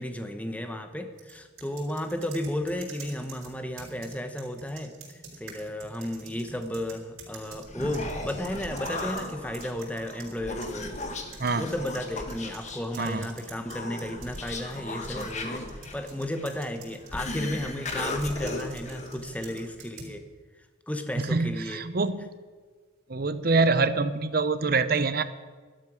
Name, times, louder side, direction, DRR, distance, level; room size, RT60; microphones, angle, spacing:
voice 1, 0.0-11.0 11.5-20.2 20.9-21.9, left 1 dB, 5° left, 7 dB, 0.9 m, -33 dB
sound 1, 1.2-10.3 10.6-17.3 17.9-20.2, right 4 dB, 90° right, 4.9 m, -48 dB
Human voice, 7.5-19.7, left 2 dB, 35° left, 1.5 m, -37 dB
voice 2, 21.2-22.2 23.1-25.2, right 3 dB, 45° right, 13 dB, 0.7 m, -25 dB
13.0 x 12.0 x 6.3 m, 1.5 s
head